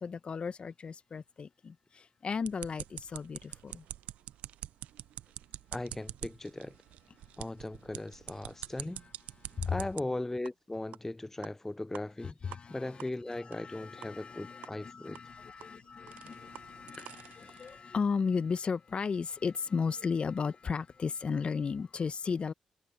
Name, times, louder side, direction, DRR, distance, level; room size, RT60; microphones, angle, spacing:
voice 1, 0.0-3.8 9.5-9.8 12.4-12.9 13.6-22.5, left 5 dB, 50° left, 1.1 m, -35 dB
sound 1, 2.4-10.0 10.5-10.6 10.9-11.0 11.4-11.5 11.9-12.0 12.5-12.6 13.0-13.1 13.5-13.6 14.0-14.1 14.6-14.7 15.2-17.8, right 13 dB, 80° right, 0.5 m, -46 dB
voice 2, 5.7-6.8 7.4-9.0 9.7-12.4 12.7-15.2, left 2 dB, 15° left, 0.5 m, -38 dB
supercardioid pair, 50°, 2 cm